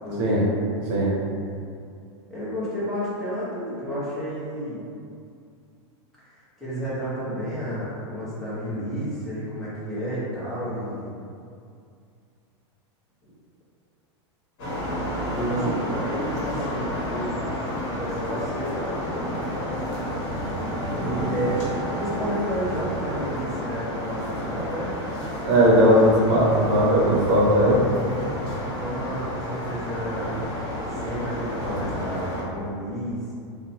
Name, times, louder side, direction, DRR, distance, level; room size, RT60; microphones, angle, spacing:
voice 1, 0.0-0.5 2.3-4.8 6.6-11.1 15.3-17.5 17.8-19.5 21.0-21.6 21.9-24.9 28.8-30.4 30.9-33.3, equal, ahead, -12 dB, 1.1 m, -31 dB
sound 1, 14.6-32.4, equal, 55° left, 1.1 m, -30 dB
voice 2, 25.4-27.9, equal, 50° right, -4 dB, 0.7 m, -18 dB
2.8 x 2.1 x 2.7 m, 2.4 s
hypercardioid pair, 120°, 15 cm